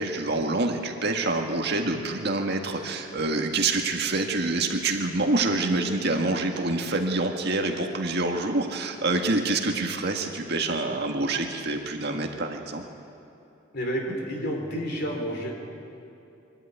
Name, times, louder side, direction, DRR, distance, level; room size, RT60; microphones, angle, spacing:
voice 1, 0.0-12.8, right 2 dB, 55° right, 3 dB, 1.9 m, -26 dB
voice 2, 13.7-15.5, equal, 55° left, 1 dB, 3.6 m, -30 dB
23.5 x 12.5 x 9.4 m, 2.9 s
head